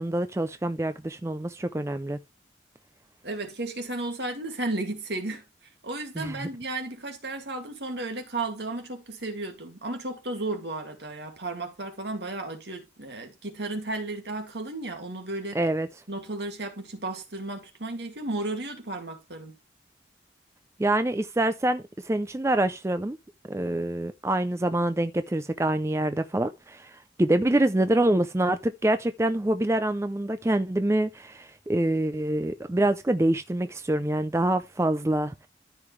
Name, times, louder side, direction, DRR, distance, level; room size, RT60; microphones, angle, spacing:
voice 1, 0.0-2.2 6.2-6.5 15.5-15.9 20.8-23.2 23.5-35.3, right 1 dB, 15° right, 0.4 m, -26 dB
voice 2, 3.2-5.4 5.8-15.6 16.1-19.6, right 2 dB, 70° right, 2.3 m, -34 dB
13.5 x 5.1 x 3.2 m
head